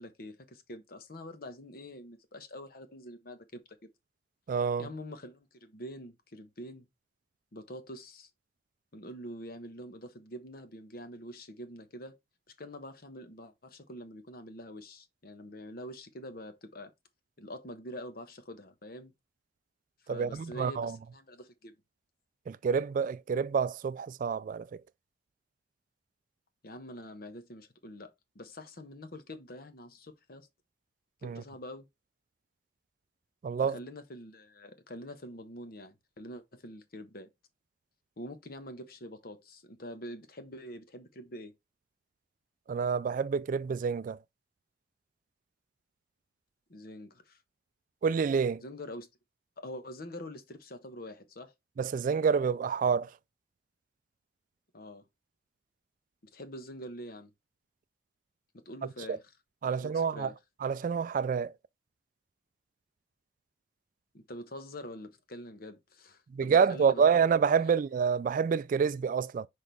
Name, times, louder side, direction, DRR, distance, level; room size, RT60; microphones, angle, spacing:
voice 1, 0.0-3.6 4.8-6.9 7.5-8.3 8.9-12.2 12.6-16.9 17.4-19.1 20.1-21.7 26.6-30.5 31.2-31.9 33.6-37.3 38.2-41.5 46.7-47.4 48.6-49.1 49.6-51.5 54.7-55.0 56.3-57.3 58.5-59.3 59.7-60.4 64.1-67.2 67.6-67.8, equal, 60° left, 1.1 m, -45 dB
voice 2, 4.5-4.9 20.1-21.0 22.5-24.7 31.2-31.4 33.4-33.8 42.7-44.2 48.0-48.6 51.8-53.1 59.6-60.3 60.6-61.5 66.3-69.5, right 6 dB, 50° right, 0.3 m, -28 dB
6.1 x 4.9 x 3.4 m
head